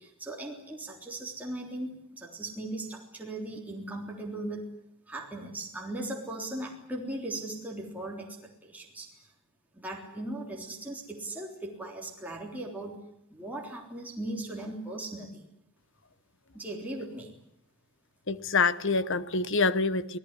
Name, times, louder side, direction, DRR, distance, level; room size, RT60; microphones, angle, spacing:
voice 1, 0.0-4.7 5.1-9.1 9.7-13.0 13.3-15.4 16.5-17.4, right 1 dB, 5° right, 3.5 m, -38 dB
voice 2, 18.3-20.2, left 4 dB, 60° left, 1.1 m, -26 dB
27.0 x 18.0 x 9.8 m
head